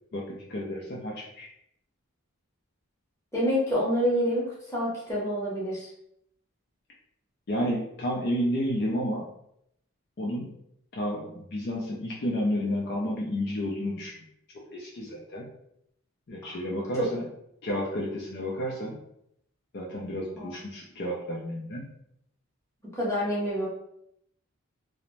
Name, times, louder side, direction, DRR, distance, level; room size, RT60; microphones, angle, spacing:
voice 1, 0.1-1.5 7.5-9.3 10.2-10.5 10.9-14.1 14.7-15.5 16.3-17.3 17.6-19.0 19.7-21.9, equal, 50° left, -3 dB, 0.4 m, -31 dB
voice 2, 3.3-5.9 16.4-16.8 20.4-20.5 22.9-23.7, equal, 15° left, -6 dB, 0.8 m, -28 dB
2.5 x 2.0 x 3.1 m, 0.75 s
head